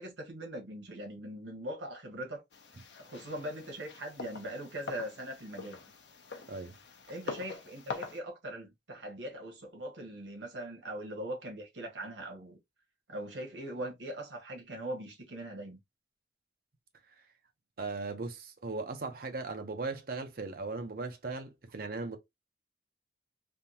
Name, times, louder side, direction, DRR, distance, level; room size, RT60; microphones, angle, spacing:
voice 1, 0.0-2.4 3.0-5.8 7.1-12.6 13.1-15.8, right 1 dB, 85° right, 1.3 m, -41 dB
sound 1, 2.5-8.2, left 4 dB, 80° left, 0.7 m, -44 dB
voice 2, 17.8-22.2, right 3 dB, 55° right, 0.7 m, -38 dB
3.6 x 2.3 x 2.8 m
head